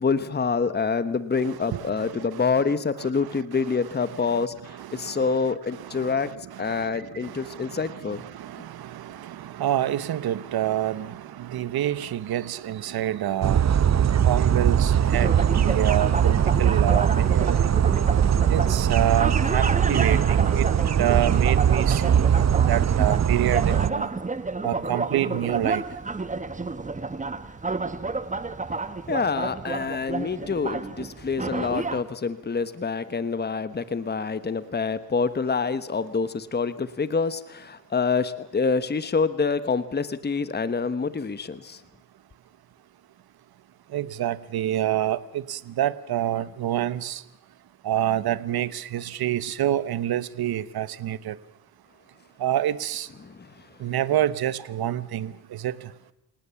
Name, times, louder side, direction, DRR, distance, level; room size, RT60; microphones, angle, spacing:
voice 1, 0.0-4.5 4.9-6.3 6.6-8.2 29.1-41.8 53.2-53.5, left 5 dB, 25° left, 14 dB, 1.2 m, -26 dB
voice 2, 1.4-2.4 3.2-3.6 4.0-5.4 5.7-13.9 14.2-17.8 18.5-20.7 21.0-24.1 24.6-26.0 43.9-47.3 47.8-51.4 52.4-53.1 53.8-55.9, right 12 dB, 75° right, 16 dB, 1.1 m, -28 dB
sound 1, 13.4-23.9, right 9 dB, 45° right, 0.9 m, -21 dB
sound 2, 15.1-32.0, right 3 dB, 20° right, 1.3 m, -31 dB
27.5 x 18.5 x 7.1 m, 0.82 s
cardioid pair, 85°, 37 cm